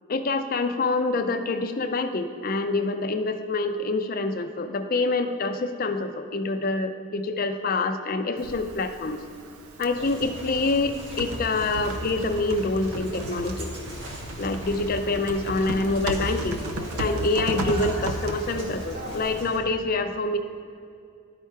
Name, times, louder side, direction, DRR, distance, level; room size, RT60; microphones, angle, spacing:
voice 1, 0.1-9.2 9.8-13.7 14.4-16.6 17.0-20.4, left 3 dB, 40° left, 8 dB, 0.4 m, -26 dB
Typing, 8.4-19.4, right 1 dB, 85° right, 0.6 m, -35 dB
sound 1, 9.9-19.6, equal, 55° right, 1.5 m, -38 dB
12.0 x 4.6 x 4.5 m, 2.4 s
head